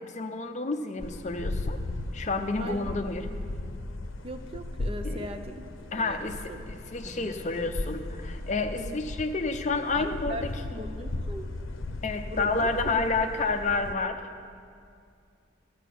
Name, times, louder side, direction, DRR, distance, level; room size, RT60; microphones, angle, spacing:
voice 1, 0.0-1.8 2.1-3.3 5.0-5.3 5.9-6.4 6.7-10.5 12.0-14.2, left 3 dB, 35° left, 7 dB, 0.6 m, -29 dB
sound 1, 1.0-14.0, left 2 dB, 85° left, 0.7 m, -37 dB
voice 2, 2.6-3.0 4.2-6.6 7.0-7.3 8.7-9.0 9.9-10.4 10.7-11.5 12.3-13.0, equal, 30° right, 7 dB, 0.5 m, -39 dB
12.0 x 9.0 x 6.0 m, 2.3 s
head